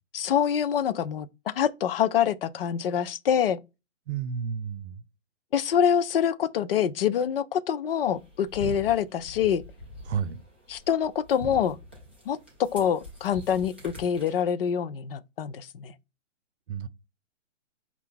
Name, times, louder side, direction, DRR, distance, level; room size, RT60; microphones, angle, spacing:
voice 1, 0.1-3.6 5.5-9.6 10.7-11.8 12.3-15.9, left 8 dB, 50° left, 0.5 m, -26 dB
voice 2, 4.1-5.0 10.1-10.4 16.7-16.9, right 7 dB, 65° right, 0.7 m, -31 dB
sound 1, 8.0-14.4, equal, 10° right, 0.3 m, -43 dB
5.2 x 2.4 x 3.8 m
hypercardioid pair, 145°, 36 cm